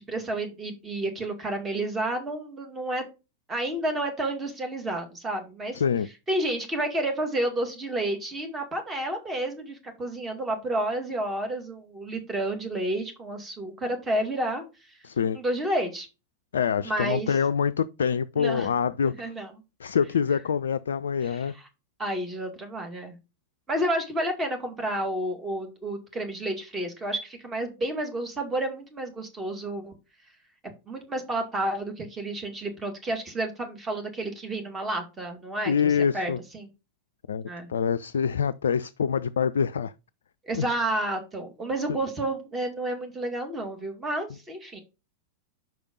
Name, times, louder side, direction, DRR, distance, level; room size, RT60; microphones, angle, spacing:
voice 1, 0.1-3.0 3.5-5.8 6.3-14.6 15.3-16.1 16.8-17.4 18.4-18.7 19.0-19.5 21.2-21.7 22.0-23.2 23.7-29.9 30.9-35.7 36.1-36.7 37.5-37.7 40.4-44.8, right 1 dB, 15° right, 2.2 m, -30 dB
voice 2, 5.7-6.1 15.0-15.4 16.5-19.1 19.8-21.5 35.7-36.4 37.3-39.9 40.6-40.7, left 7 dB, 65° left, 0.3 m, -25 dB
6.0 x 5.1 x 5.2 m
figure-of-eight pair, 90°, 0 cm